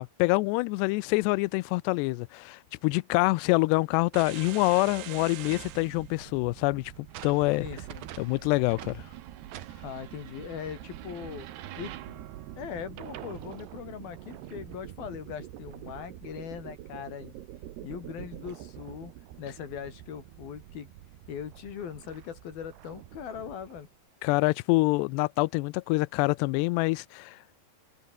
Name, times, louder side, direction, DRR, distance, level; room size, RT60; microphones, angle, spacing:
voice 1, 0.0-6.9 7.2-7.7 8.2-9.0 24.2-27.4, left 24 dB, 80° left, 2.6 m, -26 dB
sound 1, 4.1-23.8, right 13 dB, 75° right, 3.5 m, -44 dB
voice 2, 7.6-8.1 9.8-11.5 11.8-12.2 12.6-17.3 17.8-19.1 19.4-20.9 21.3-23.9, left 8 dB, 60° left, 4.1 m, -40 dB
omnidirectional pair, 5.0 m